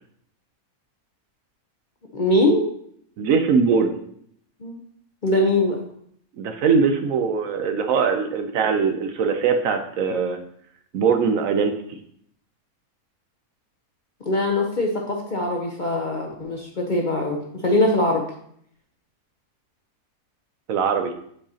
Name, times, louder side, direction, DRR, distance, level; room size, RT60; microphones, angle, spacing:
voice 1, 2.1-2.7 4.6-4.7 5.2-5.8 14.3-18.2, left 1 dB, 45° left, 0 dB, 0.6 m, -22 dB
voice 2, 3.2-4.0 6.4-10.4 10.9-11.7 20.7-21.1, right 5 dB, 70° right, 6 dB, 1.0 m, -21 dB
7.6 x 4.8 x 2.8 m, 0.67 s
omnidirectional pair, 1.6 m